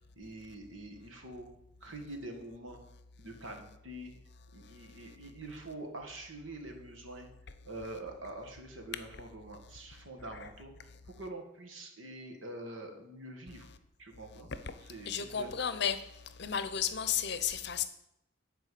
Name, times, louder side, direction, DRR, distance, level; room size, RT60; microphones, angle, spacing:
voice 1, 0.0-1.5 1.8-2.8 3.2-4.1 4.5-7.3 7.6-10.7 11.0-13.7 14.0-14.5 14.8-15.5, right 1 dB, 90° right, 1.8 m, -45 dB
voice 2, 15.1-16.0 16.4-17.9, left 8 dB, 60° left, 0.7 m, -32 dB
9.5 x 4.6 x 7.6 m
head